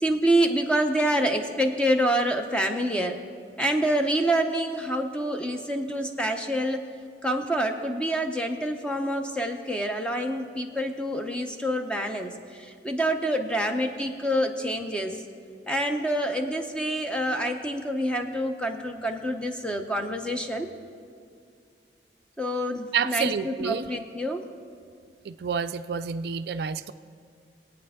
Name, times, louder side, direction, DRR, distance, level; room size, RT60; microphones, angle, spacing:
voice 1, 0.0-3.2 3.6-6.8 7.2-12.3 12.6-15.2 15.7-20.7 22.4-24.5, right 1 dB, 5° left, 4 dB, 0.7 m, -27 dB
voice 2, 22.9-23.9 25.3-26.9, right 6 dB, 60° right, 11 dB, 0.3 m, -29 dB
21.5 x 8.7 x 3.6 m, 2.3 s
head